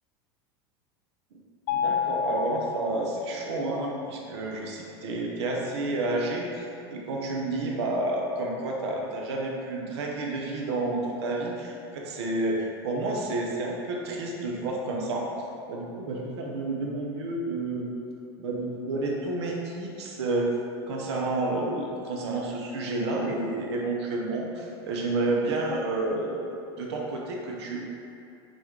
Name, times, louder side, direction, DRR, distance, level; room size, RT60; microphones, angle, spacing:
Mallet percussion, 1.7-3.7, left 7 dB, 70° left, 0.4 m, -30 dB
voice 1, 1.7-6.6 6.9-15.3 15.7-17.9 18.4-20.5 20.9-26.5 26.8-27.9, right 2 dB, 85° right, -1 dB, 0.8 m, -30 dB
6.0 x 2.4 x 3.6 m, 2.6 s
supercardioid pair, 110°, 14 cm